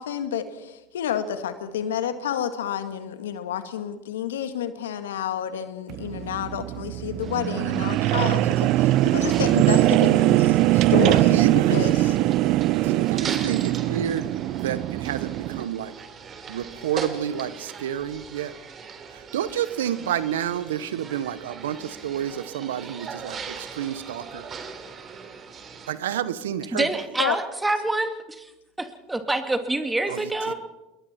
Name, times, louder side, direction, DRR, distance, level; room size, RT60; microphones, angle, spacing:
voice 1, 0.0-12.2 27.2-27.4, left 9 dB, 85° left, 10 dB, 1.8 m, -30 dB
sound 1, 5.9-15.6, right 16 dB, 60° right, 0.6 m, -21 dB
sound 2, 7.2-25.9, right 5 dB, 35° right, 3.7 m, -40 dB
voice 2, 11.3-11.8 12.8-14.3 14.5-15.9 16.5-18.5 19.1-24.4 25.9-26.9 30.1-30.2 30.5-30.6, right 10 dB, 80° right, 15 dB, 1.1 m, -29 dB
voice 3, 26.7-28.5 28.8-30.5, right 2 dB, 10° right, 7 dB, 2.7 m, -26 dB
28.5 x 22.0 x 4.4 m, 1.0 s
hypercardioid pair, 80°, 0 cm